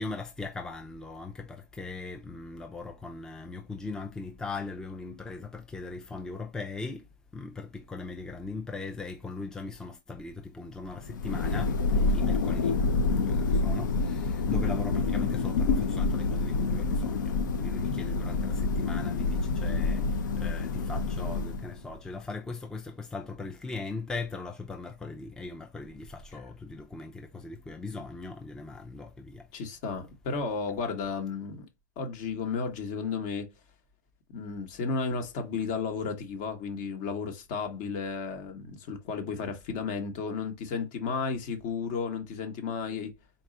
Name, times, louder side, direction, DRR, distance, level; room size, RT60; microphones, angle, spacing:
voice 1, 0.0-7.0 7.3-12.8 13.1-29.5, left 3 dB, 5° left, 0.4 m, -39 dB
Thunder, 10.9-21.9, left 3 dB, 75° left, 0.6 m, -27 dB
voice 2, 29.5-31.7 32.0-33.5 34.3-43.1, left 5 dB, 45° left, 1.0 m, -33 dB
4.0 x 2.3 x 3.7 m
hypercardioid pair, 120°, 10 cm